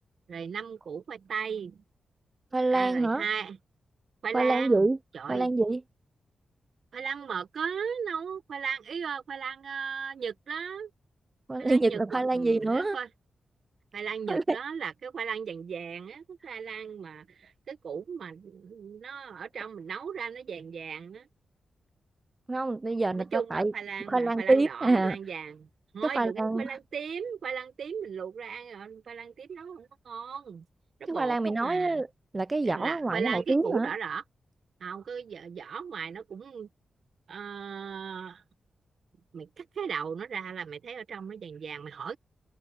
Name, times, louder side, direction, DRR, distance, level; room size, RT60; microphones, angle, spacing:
voice 1, 0.3-1.8 2.7-3.6 4.2-4.9 5.1-5.5 6.9-10.9 11.6-13.1 13.9-21.3 23.2-25.7 25.9-30.6 31.0-32.0 32.6-34.2 34.8-36.7 37.3-38.4 39.3-42.2, right 6 dB, 65° right, 0.9 m, -37 dB
voice 2, 2.5-3.2 4.3-5.0 5.3-5.8 11.5-13.0 14.3-14.6 22.5-23.7 24.1-25.2 26.1-26.7 31.1-32.1 32.3-33.9, right 3 dB, 25° right, 0.4 m, -26 dB
wide cardioid pair, 130°, 0 cm